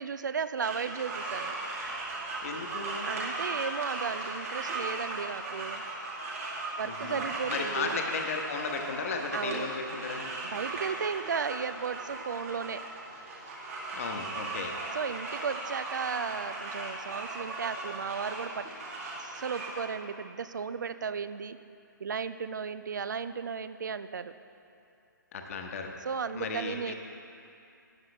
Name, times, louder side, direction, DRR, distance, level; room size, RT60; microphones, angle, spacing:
voice 1, 0.0-1.5 3.0-5.8 6.8-8.0 9.3-9.7 10.5-12.8 14.9-18.7 19.2-21.6 22.0-24.3 26.0-26.9, right 6 dB, 60° right, 13 dB, 0.4 m, -35 dB
sound 1, 0.6-19.8, right 2 dB, 40° right, 2.2 m, -37 dB
voice 2, 2.4-3.1 6.8-10.3 13.9-14.7 25.3-25.9 26.3-26.9, left 4 dB, 45° left, 3 dB, 1.1 m, -35 dB
13.0 x 9.8 x 3.2 m, 2.6 s
figure-of-eight pair, 130°, 11 cm